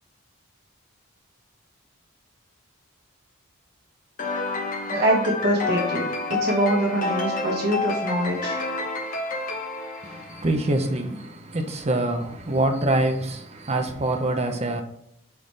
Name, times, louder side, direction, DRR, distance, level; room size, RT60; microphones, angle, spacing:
sound 1, 4.2-10.8, left 3 dB, 40° left, 0.8 m, -29 dB
voice 1, 4.9-6.1 6.4-8.6, right 1 dB, 50° right, 1.4 m, -24 dB
voice 2, 10.0-14.8, right 1 dB, 30° right, 0.7 m, -25 dB
7.9 x 3.7 x 3.3 m
head